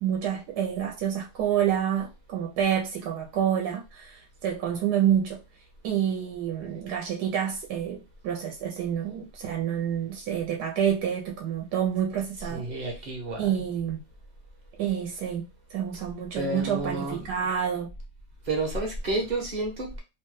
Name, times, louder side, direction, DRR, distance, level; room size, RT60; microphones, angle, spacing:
voice 1, 0.0-5.4 5.8-12.6 13.4-14.0 14.8-15.4 15.7-17.9, right 9 dB, 85° right, 1.2 m, -28 dB
voice 2, 12.4-13.5 15.9-16.0 16.3-17.3 18.4-20.0, right 2 dB, 40° right, 0.7 m, -31 dB
2.9 x 2.2 x 3.1 m
omnidirectional pair, 1.7 m